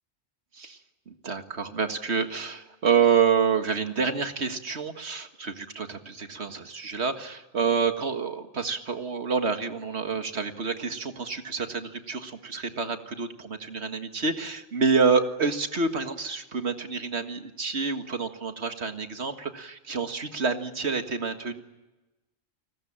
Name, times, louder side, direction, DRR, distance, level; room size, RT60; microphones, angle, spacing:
voice 1, 1.1-21.6, right 5 dB, 70° right, 7 dB, 2.0 m, -28 dB
29.5 x 20.0 x 8.8 m, 1.1 s
omnidirectional pair, 1.2 m